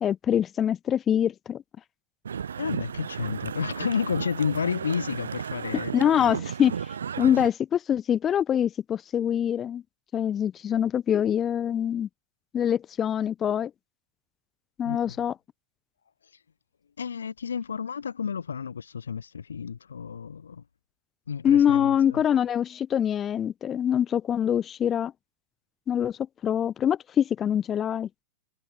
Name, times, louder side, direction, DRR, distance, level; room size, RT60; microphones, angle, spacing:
voice 1, 0.0-1.6 5.9-6.8 7.2-9.8 10.1-12.1 12.5-13.7 14.8-15.3 21.4-25.1 25.9-28.1, left 9 dB, 25° left, 0.6 m, -24 dB
sound 1, 2.3-7.5, right 7 dB, 70° right, 0.3 m, -34 dB
voice 2, 2.6-6.3 14.8-15.2 17.0-20.6 21.3-22.2, left 6 dB, 70° left, 0.5 m, -31 dB
figure-of-eight pair, 90°, 0 cm